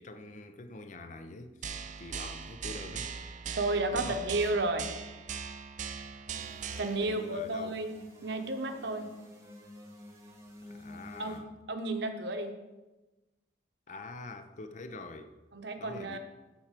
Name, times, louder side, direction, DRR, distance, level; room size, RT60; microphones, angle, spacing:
voice 1, 0.0-3.1 3.9-4.3 7.0-7.8 10.6-11.5 13.9-15.3 15.8-16.2, left 2 dB, 40° left, 0.6 m, -45 dB
sound 1, 1.6-7.0, right 6 dB, 40° right, 0.5 m, -40 dB
voice 2, 3.6-4.9 6.8-9.1 11.2-11.4 11.7-12.5 15.5-16.2, right 2 dB, 60° right, 0.9 m, -32 dB
sound 2, 6.3-11.4, left 1 dB, 15° right, 1.1 m, -51 dB
12.0 x 4.3 x 5.1 m
head